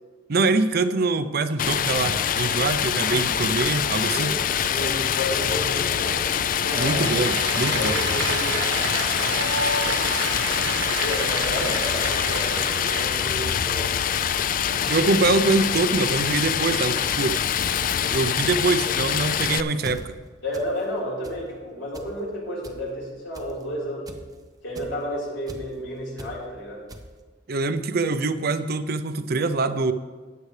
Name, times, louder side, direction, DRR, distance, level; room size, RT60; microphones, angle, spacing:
voice 1, 0.3-4.3 6.8-7.9 14.9-17.4 18.1-20.1 27.5-29.9, right 3 dB, 55° right, 11 dB, 0.6 m, -24 dB
Stream, 1.6-19.6, left 9 dB, 45° left, 0.4 m, -25 dB
voice 2, 4.7-6.2 6.6-7.4 7.6-8.6 11.0-13.9 20.4-24.1 24.6-26.8, equal, 75° left, -6 dB, 4.2 m, -31 dB
Applause, 6.6-13.4, right 3 dB, 90° right, 1.3 m, -30 dB
sound 1, 10.0-10.1 10.7-10.8 11.4-11.6 11.8-12.2 12.8-13.0 13.3-13.6 14.0-14.3 14.7-15.0 15.6-15.9 16.3-16.6 17.0-17.3 17.7-17.9 18.2-18.5 19.0-19.4 19.8-20.0 20.5-20.7 21.0-21.4 21.9-22.1 22.6-22.7 23.3-23.6 24.1-24.3 24.8-24.9 25.5-25.6 26.2-26.3 26.9-27.0, right 1 dB, 20° right, 0.8 m, -40 dB
15.0 x 9.7 x 3.3 m, 1.4 s
head